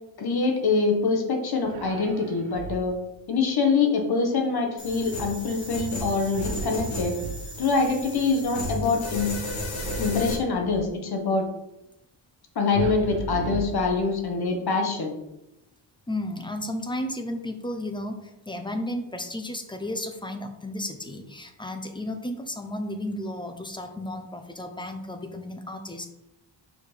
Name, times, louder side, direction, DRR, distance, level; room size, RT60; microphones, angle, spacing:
voice 1, 0.2-3.0 3.3-7.2 7.6-9.3 10.0-11.4 12.5-15.1, left 4 dB, 55° left, 3 dB, 1.3 m, -24 dB
sound 1, 1.6-3.1 6.3-7.9 9.8-11.0 12.7-14.4, right 7 dB, 85° right, 0.6 m, -36 dB
sound 2, 4.8-10.3, left 1 dB, 85° left, 1.8 m, -33 dB
voice 2, 16.1-26.1, left 1 dB, 10° left, 6 dB, 0.7 m, -33 dB
5.0 x 4.3 x 5.0 m, 0.88 s
cardioid pair, 110°, 45 cm